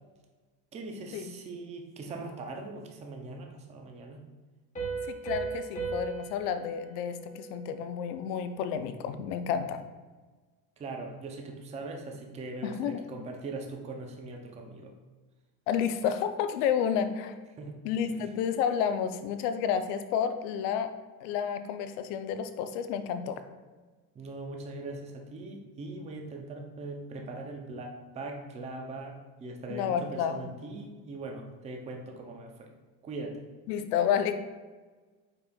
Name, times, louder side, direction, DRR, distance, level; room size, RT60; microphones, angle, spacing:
voice 1, 0.7-4.2 10.8-14.9 17.6-17.8 18.1-18.2 24.2-32.7 33.0-33.5, right 2 dB, 15° right, 2 dB, 0.4 m, -41 dB
Piano, 4.8-8.2, right 5 dB, 15° left, 1.1 m, -37 dB
voice 2, 5.1-9.8 12.6-13.0 15.7-17.4 17.8-20.9 21.2-23.4 29.7-30.4 33.7-34.4, left 8 dB, 90° left, 10 dB, 0.6 m, -30 dB
5.1 x 4.2 x 2.2 m, 1.3 s
cardioid pair, 130°, 44 cm